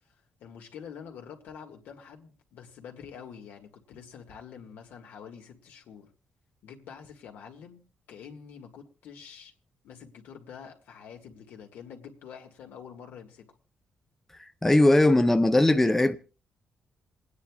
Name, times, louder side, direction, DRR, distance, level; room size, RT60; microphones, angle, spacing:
voice 1, 0.4-6.1 6.6-9.5 9.8-13.5, left 7 dB, 85° left, 2.0 m, -46 dB
voice 2, 14.6-16.2, left 1 dB, 10° left, 0.6 m, -19 dB
28.0 x 9.6 x 2.4 m
cardioid pair, 125°, 3 cm